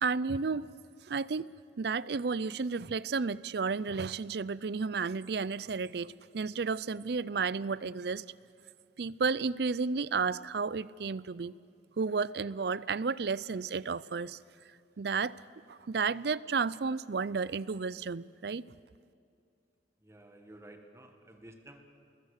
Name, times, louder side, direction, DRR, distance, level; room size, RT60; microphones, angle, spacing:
voice 1, 0.0-0.7 1.0-1.5 1.8-8.2 9.0-11.5 12.0-14.4 15.0-15.4 15.7-18.6, right 4 dB, 60° right, 19 dB, 0.5 m, -32 dB
voice 2, 20.0-21.8, right 1 dB, 15° right, 4 dB, 1.7 m, -52 dB
28.5 x 21.0 x 6.6 m, 2.5 s
head